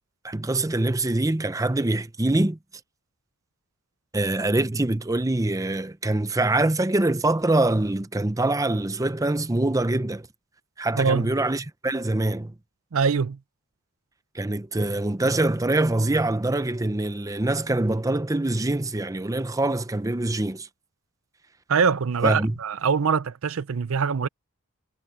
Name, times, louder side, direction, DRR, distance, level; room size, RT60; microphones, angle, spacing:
voice 1, 0.2-2.6 4.1-10.3 10.8-12.5 14.3-20.7 22.2-22.5, right 2 dB, 15° right, 0.7 m, -24 dB
voice 2, 11.0-11.3 12.9-13.4 21.7-24.3, right 6 dB, 65° right, 0.5 m, -23 dB
head